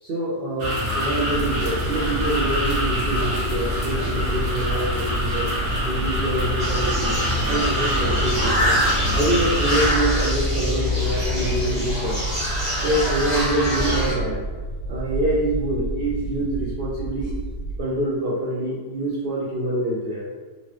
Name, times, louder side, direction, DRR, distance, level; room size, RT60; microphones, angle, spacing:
voice 1, 0.0-5.5 5.8-7.1 7.5-8.7 9.1-12.2 12.8-14.4 14.9-17.3 17.8-20.2, right 1 dB, 80° right, -6 dB, 0.5 m, -25 dB
sound 1, 0.6-9.9, left 1 dB, 65° right, 1.2 m, -25 dB
sound 2, 1.3-17.8, right 2 dB, 80° left, 1.7 m, -30 dB
sound 3, 6.6-14.1, equal, 20° left, 1.1 m, -25 dB
4.0 x 2.6 x 3.1 m, 1.4 s
omnidirectional pair, 1.7 m